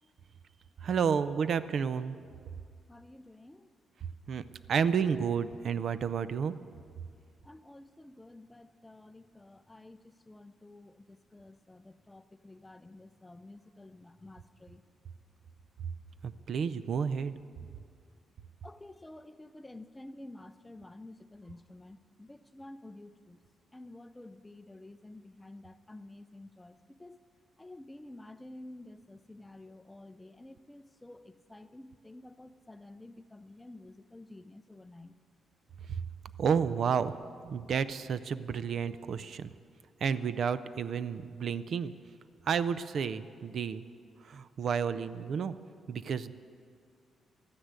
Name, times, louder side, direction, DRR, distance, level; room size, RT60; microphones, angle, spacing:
voice 1, 0.8-2.2 4.3-4.4 4.7-6.5 16.2-17.4 36.4-37.1 37.4-39.5 40.0-41.9 42.5-43.8 44.2-45.5 45.9-46.3, right 6 dB, 55° right, 14 dB, 0.5 m, -31 dB
voice 2, 2.9-3.7 7.4-14.8 17.6-17.7 18.6-23.4 23.7-27.2 27.6-35.2, left 2 dB, 10° left, 12 dB, 0.5 m, -51 dB
13.0 x 9.8 x 8.2 m, 2.2 s
cardioid pair, 140°, 0 cm